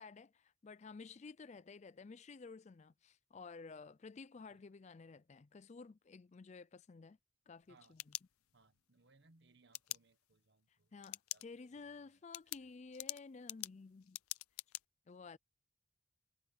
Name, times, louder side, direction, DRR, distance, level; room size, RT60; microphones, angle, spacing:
voice 1, 0.0-7.2 7.5-8.2 10.9-14.2 15.1-15.4, left 4 dB, 30° left, 0.4 m, -53 dB
sound 1, 7.6-8.8 9.7-10.0 11.0-11.5 11.8-11.9 12.3-14.8, left 17 dB, 85° left, 0.5 m, -45 dB
voice 2, 8.5-10.9 11.3-11.5 11.7-12.0, right 3 dB, 55° right, 1.2 m, -69 dB
head